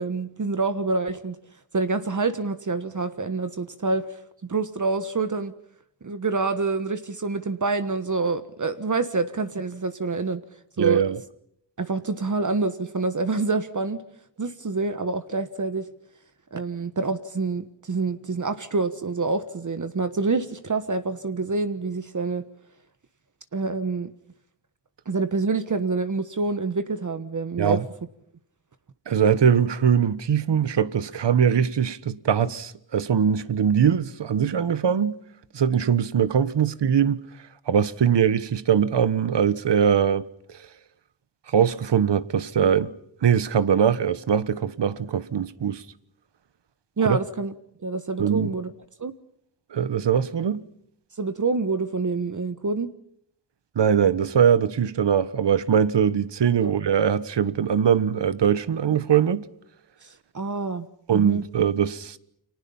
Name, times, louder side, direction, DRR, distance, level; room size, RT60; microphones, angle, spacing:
voice 1, 0.0-1.4 1.7-5.5 6.0-10.4 10.8-11.0 11.8-14.0 14.4-15.9 16.5-22.5 23.5-24.1 25.0-27.8 47.0-47.5 47.8-48.7 49.0-49.1 51.2-52.9 56.6-56.7 60.0-61.4, right 3 dB, 40° right, 1.4 m, -27 dB
voice 2, 10.8-11.2 27.6-27.8 29.1-35.2 35.5-37.2 37.7-40.3 41.5-42.9 43.2-45.8 47.0-47.2 48.2-48.5 49.7-50.6 53.7-59.5 61.1-62.2, right 8 dB, 65° right, 1.4 m, -21 dB
30.0 x 24.5 x 5.6 m
cardioid pair, 80°, 45 cm